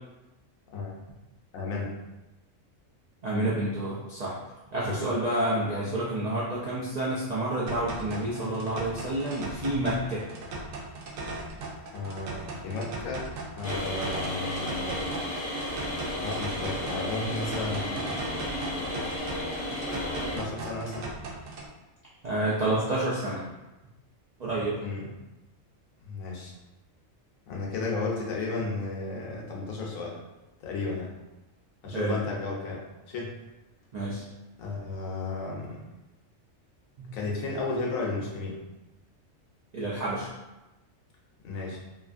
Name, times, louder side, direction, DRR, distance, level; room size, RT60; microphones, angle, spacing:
voice 1, 1.5-1.9 4.8-5.0 11.9-15.0 16.2-18.4 20.0-21.1 24.8-25.1 26.0-26.5 27.5-30.2 30.6-31.1 31.8-33.4 34.6-35.8 37.1-38.6 41.4-41.8, left 3 dB, 90° left, -2 dB, 1.1 m, -34 dB
voice 2, 3.2-4.3 4.7-10.2 22.2-23.4 24.4-24.8 31.9-32.2 33.9-34.2 37.0-37.2 39.7-40.3, right 1 dB, 70° right, -7 dB, 0.4 m, -29 dB
sound 1, 7.7-21.7, right 2 dB, 90° right, 1.0 m, -38 dB
sound 2, 13.6-20.4, left 1 dB, 50° left, 1.0 m, -33 dB
2.9 x 2.4 x 2.4 m, 1.0 s
omnidirectional pair, 1.4 m